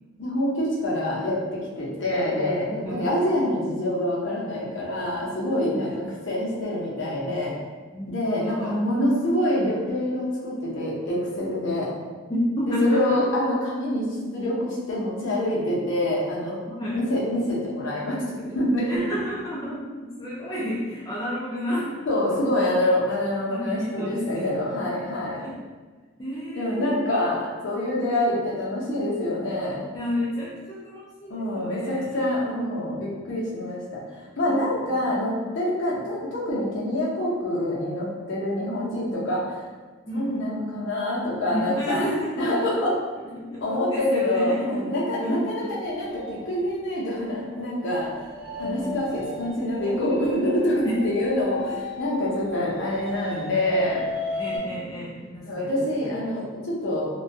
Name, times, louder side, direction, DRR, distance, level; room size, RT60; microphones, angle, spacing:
voice 1, 0.2-7.5 8.1-11.9 12.8-16.6 16.9-18.9 22.1-25.4 26.5-29.8 31.3-34.0 34.4-39.6 40.1-42.1 42.4-42.9 43.6-48.1 48.6-54.0 55.5-57.1, left 1 dB, 65° left, -5 dB, 0.6 m, -26 dB
voice 2, 2.8-3.2 5.8-6.0 7.3-7.4 7.9-8.8 12.3-13.3 16.7-17.0 18.9-21.9 23.5-24.5 25.4-25.5 26.2-27.0 29.9-32.2 34.5-35.1 40.1-40.5 41.5-42.7 43.3-45.8 48.6-49.3 50.8-51.0 51.7-51.8 53.3-53.5 54.3-56.3, left 1 dB, 20° left, -8 dB, 0.3 m, -31 dB
sound 1, 45.8-54.6, left 3 dB, 30° right, 0.8 m, -35 dB
2.2 x 2.2 x 2.6 m, 1.4 s
head